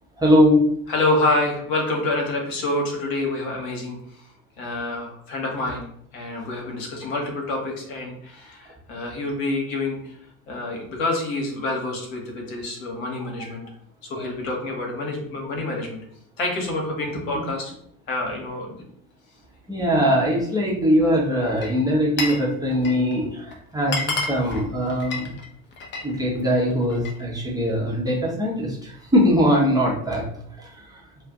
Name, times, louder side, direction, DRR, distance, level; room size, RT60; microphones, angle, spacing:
voice 1, 0.2-0.6 19.7-25.3 26.0-30.2 30.6-31.0, equal, 10° right, -4 dB, 0.7 m, -21 dB
voice 2, 0.9-4.3 4.6-5.9 6.1-10.1 10.5-13.6 14.0-16.0 16.4-17.7 18.1-18.8, left 2 dB, 65° left, 0 dB, 1.0 m, -27 dB
Glass, 21.5-22.5 22.7-23.1 23.5-23.6 23.8-26.1 26.5-27.2, left 3 dB, 25° left, 0.5 m, -30 dB
2.4 x 2.1 x 3.6 m, 0.67 s
figure-of-eight pair, 65°, 43 cm